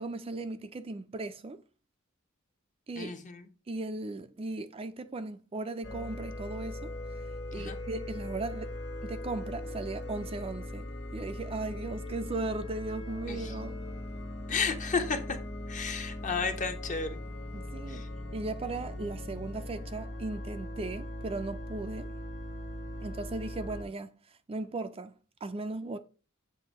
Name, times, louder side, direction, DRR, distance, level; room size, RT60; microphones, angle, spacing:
voice 1, 0.0-1.6 2.9-3.1 3.7-7.2 7.5-8.7 9.0-13.8 17.5-18.0 18.3-22.2 23.0-24.1 24.5-26.0, right 2 dB, 30° right, 0.4 m, -37 dB
voice 2, 3.0-3.5 7.5-7.8 13.3-13.5 14.5-15.4 15.7-17.2 17.9-18.1, left 5 dB, 40° left, 0.9 m, -33 dB
sound 1, 5.8-23.8, left 1 dB, 60° left, 1.6 m, -39 dB
7.7 x 2.7 x 5.2 m
head